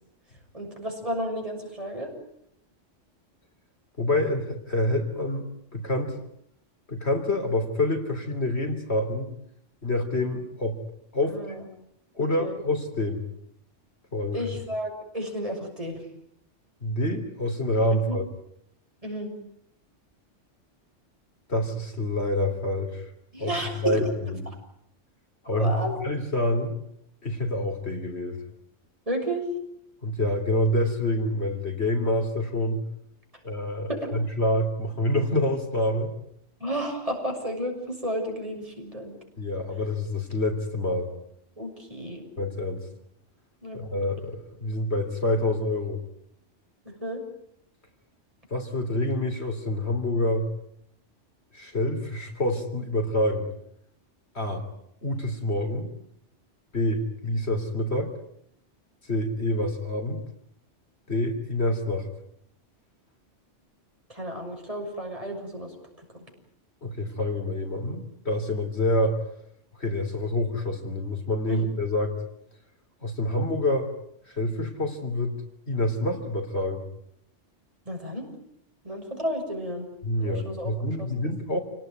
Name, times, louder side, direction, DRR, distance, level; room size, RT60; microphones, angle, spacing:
voice 1, 0.5-2.1 11.3-11.7 12.4-12.5 14.3-16.0 17.9-18.2 19.0-19.3 23.3-24.3 25.5-25.9 29.1-29.5 33.9-34.1 36.6-39.2 41.6-42.2 43.6-44.1 46.9-47.2 64.1-66.3 71.5-71.6 77.9-78.3 78.8-79.9 80.2-81.1, equal, 30° right, 2 dB, 6.9 m, -32 dB
voice 2, 4.0-6.2 6.9-9.3 9.8-10.8 11.1-11.4 12.1-13.2 14.1-14.4 16.8-18.3 21.5-23.1 23.4-23.5 23.8-24.0 24.4-24.5 25.4-25.8 26.0-26.8 27.2-28.4 30.0-32.8 33.4-36.1 39.4-41.1 42.4-42.8 43.7-46.0 48.5-50.5 51.5-53.5 54.3-54.6 55.0-55.9 56.7-58.1 59.1-60.2 61.1-62.1 66.8-69.2 69.8-72.1 73.0-73.9 74.3-75.3 75.7-76.8 80.0-81.6, left 1 dB, 60° left, 5 dB, 3.8 m, -27 dB
29.0 x 19.0 x 9.4 m, 0.74 s
omnidirectional pair, 1.2 m